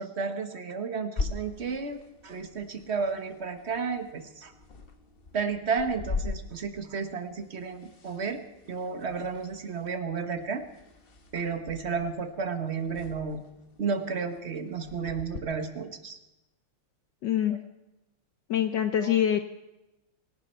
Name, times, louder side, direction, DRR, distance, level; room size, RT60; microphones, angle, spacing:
voice 1, 0.0-2.0 2.2-4.5 5.3-8.4 8.7-10.6 11.3-13.4 13.8-16.2 19.0-19.1, right 5 dB, 35° right, 9 dB, 1.3 m, -32 dB
sound 1, 1.2-15.4, left 4 dB, 35° left, 1.0 m, -41 dB
voice 2, 17.2-17.6 18.5-19.4, left 10 dB, 65° left, 9 dB, 1.2 m, -25 dB
26.5 x 11.5 x 4.5 m, 0.98 s
omnidirectional pair, 2.4 m